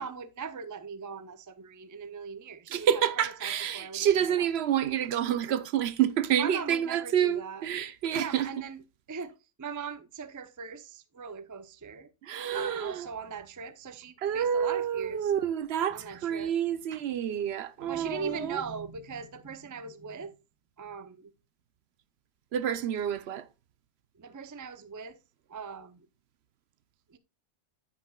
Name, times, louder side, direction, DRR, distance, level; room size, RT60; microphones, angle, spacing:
voice 1, 0.0-4.5 6.4-7.6 8.1-8.8 9.1-9.3 9.6-12.1 12.5-15.3 15.9-16.5 17.8-20.3 20.8-21.3 24.2-25.2 25.5-26.1 27.1-27.2, right 5 dB, 30° right, 0.4 m, -40 dB
voice 2, 2.7-8.5 12.2-13.1 14.2-18.6 22.5-23.5, right 9 dB, 65° right, 0.8 m, -28 dB
9.5 x 8.4 x 2.3 m
omnidirectional pair, 1.2 m